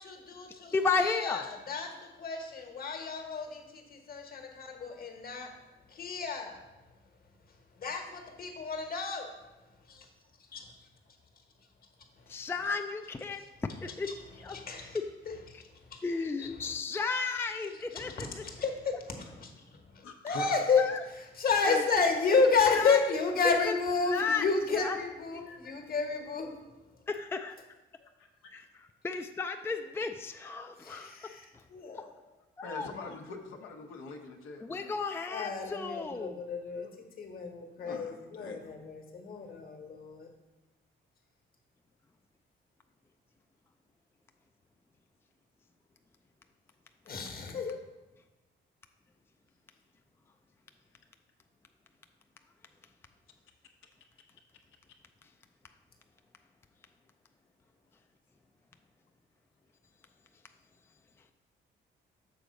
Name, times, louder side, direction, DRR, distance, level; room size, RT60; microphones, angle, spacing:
voice 1, 0.0-5.6 5.9-6.6 7.8-9.4 9.8-10.1 10.5-10.9 12.2-12.3 13.3-13.5 14.0-15.0 15.2-16.0 16.4-16.7 17.9-18.3 18.6-26.6 30.8-32.1 35.3-40.3 47.1-47.8, left 4 dB, 50° left, 3 dB, 1.4 m, -32 dB
voice 2, 0.7-1.4 12.3-13.4 13.8-14.1 14.4-14.6 16.0-18.3 20.8-20.9 21.7-21.8 22.7-23.0 24.1-24.4 24.8-25.0 27.1-27.6 28.5-28.6 29.0-31.1 32.0-32.1 32.6-32.9 34.6-36.4, left 4 dB, 10° left, 6 dB, 0.4 m, -33 dB
voice 3, 20.0-20.6 25.5-25.8 28.2-28.5 32.6-34.9 37.8-38.6, left 4 dB, 85° left, 2 dB, 1.0 m, -44 dB
6.9 x 3.9 x 6.2 m, 1.1 s
cardioid pair, 90°, 20 cm